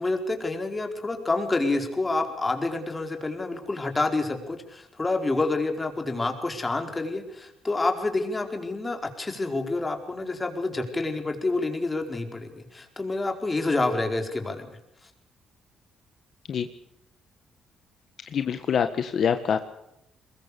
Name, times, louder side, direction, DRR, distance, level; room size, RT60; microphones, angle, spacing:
voice 1, 0.0-14.8, left 2 dB, 20° left, 4 dB, 4.7 m, -28 dB
voice 2, 18.3-19.6, left 7 dB, 60° left, 8 dB, 1.5 m, -25 dB
22.5 x 21.5 x 7.0 m, 0.83 s
cardioid pair, 90°, 0 cm